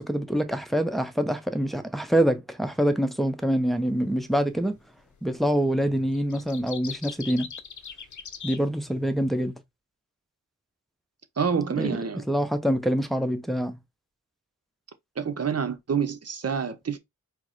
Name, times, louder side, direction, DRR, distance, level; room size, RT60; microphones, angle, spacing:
voice 1, 0.0-4.8 5.2-7.5 8.4-9.5 11.8-12.0 12.3-13.8, equal, ahead, 0.7 m, -25 dB
sound 1, 3.7-3.9 5.1-5.5 5.8-9.4, left 6 dB, 70° left, 0.8 m, -40 dB
voice 2, 11.4-12.2 15.2-17.0, right 6 dB, 50° right, 0.8 m, -27 dB
4.6 x 2.1 x 4.0 m
wide cardioid pair, 60°, 31 cm